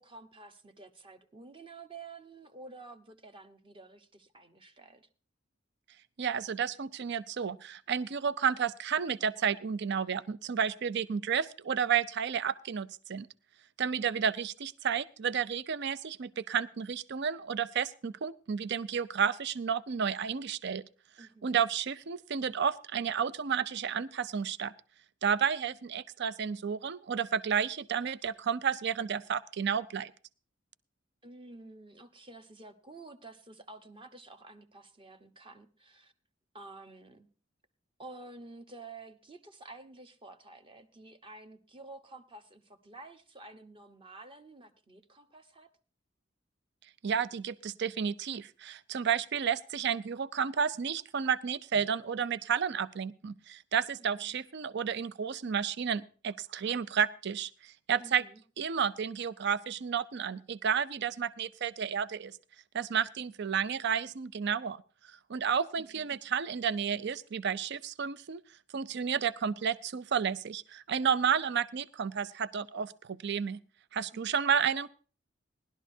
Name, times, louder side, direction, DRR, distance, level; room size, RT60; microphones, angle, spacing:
voice 1, 0.0-5.1 21.2-21.5 31.2-36.1 36.5-37.3 38.0-45.7 54.1-54.4 58.0-58.4 65.7-66.1 74.1-74.4, right 3 dB, 25° right, 8 dB, 1.0 m, -51 dB
voice 2, 6.2-13.3 13.8-20.8 21.4-24.7 25.2-30.1 47.0-58.2 58.6-62.4 62.7-64.8 65.3-68.4 68.7-73.6 73.9-74.9, right 7 dB, 60° right, 16 dB, 0.5 m, -31 dB
19.0 x 12.0 x 2.7 m, 0.38 s
head